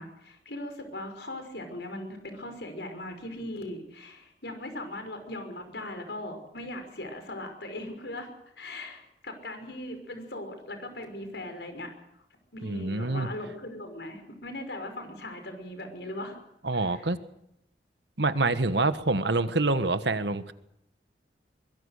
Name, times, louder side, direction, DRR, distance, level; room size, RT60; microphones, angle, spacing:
voice 1, 0.0-11.9 12.5-16.4 16.7-17.0, left 1 dB, 70° left, 6 dB, 5.6 m, -39 dB
voice 2, 12.6-13.3 16.6-17.2 18.2-20.5, right 2 dB, 75° right, 11 dB, 1.4 m, -26 dB
24.5 x 22.0 x 6.6 m, 0.78 s
head